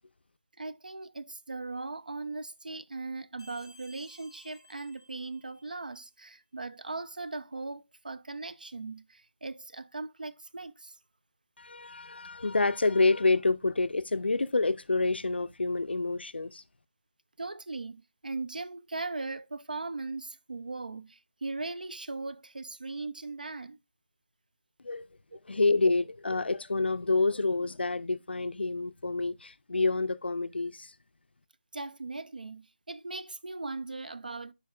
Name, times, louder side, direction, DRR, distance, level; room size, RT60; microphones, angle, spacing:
voice 1, 0.6-11.0 17.4-23.8 31.7-34.5, right 3 dB, 50° right, 0.4 m, -39 dB
sound 1, 3.4-5.9, equal, 5° right, 1.0 m, -57 dB
voice 2, 11.6-16.6 24.8-25.1 25.4-30.9, left 3 dB, 65° left, 0.5 m, -28 dB
11.0 x 4.5 x 2.3 m
figure-of-eight pair, 180°, 6 cm